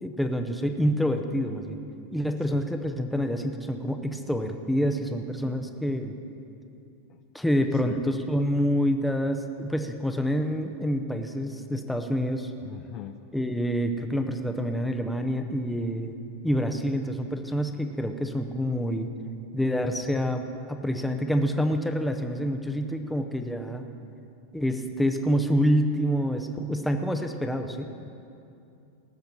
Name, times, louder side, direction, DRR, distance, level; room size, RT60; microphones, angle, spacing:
voice 1, 0.0-1.8 2.1-6.1 7.3-12.5 13.3-16.2 16.4-19.1 19.5-23.9 24.5-27.9, equal, 5° left, 5 dB, 0.7 m, -27 dB
voice 2, 12.6-13.2, left 13 dB, 35° left, 9 dB, 0.4 m, -41 dB
18.5 x 7.0 x 6.1 m, 2.6 s
supercardioid pair, 155°, 0 cm